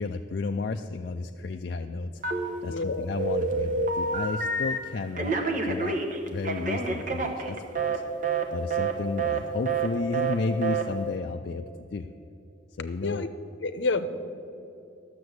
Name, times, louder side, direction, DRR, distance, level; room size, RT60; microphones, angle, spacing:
voice 1, 0.0-5.3 5.6-6.0 6.3-8.0 8.5-12.1 12.8-13.3, left 3 dB, 50° left, 4 dB, 0.4 m, -32 dB
Telephone, 2.2-2.8 3.2-4.8 5.2-8.0 8.2-8.4 8.7-8.9 9.2-9.4 9.6-9.9 10.1-10.3 10.6-10.8, right 4 dB, 40° right, 1.0 m, -28 dB
voice 2, 2.7-3.1 13.0-13.3 13.6-14.1, left 3 dB, 65° left, 10 dB, 0.7 m, -28 dB
12.5 x 6.8 x 7.9 m, 2.7 s
head